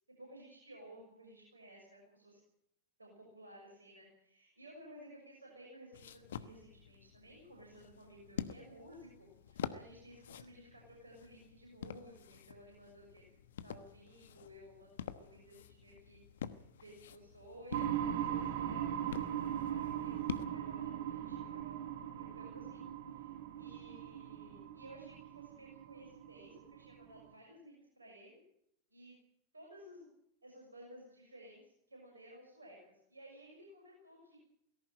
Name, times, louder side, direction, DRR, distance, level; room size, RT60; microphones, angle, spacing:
voice 1, 0.2-2.4 3.0-13.3 13.6-21.8 22.2-28.4 28.9-29.2 29.5-30.1 30.4-34.4, equal, 80° right, -1 dB, 6.5 m, -56 dB
sound 1, 5.9-20.5, left 9 dB, 60° left, 1.2 m, -48 dB
sound 2, 17.7-27.3, right 10 dB, 55° right, 1.9 m, -40 dB
18.5 x 17.5 x 9.0 m, 0.74 s
figure-of-eight pair, 90°, 0 cm